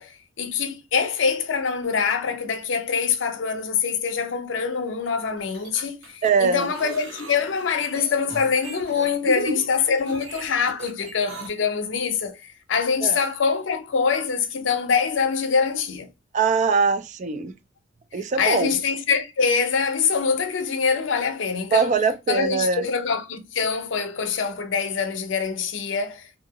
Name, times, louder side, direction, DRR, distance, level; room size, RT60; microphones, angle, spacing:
voice 1, 0.0-16.1 18.4-22.0 22.3-26.3, left 5 dB, 65° left, 0.6 m, -24 dB
sound 1, 5.4-11.5, right 2 dB, 80° right, 1.2 m, -41 dB
voice 2, 6.2-6.7 9.3-9.6 13.0-13.2 16.3-17.5 18.1-18.7 21.7-22.8, right 5 dB, 40° right, 0.3 m, -22 dB
2.8 x 2.6 x 2.8 m
head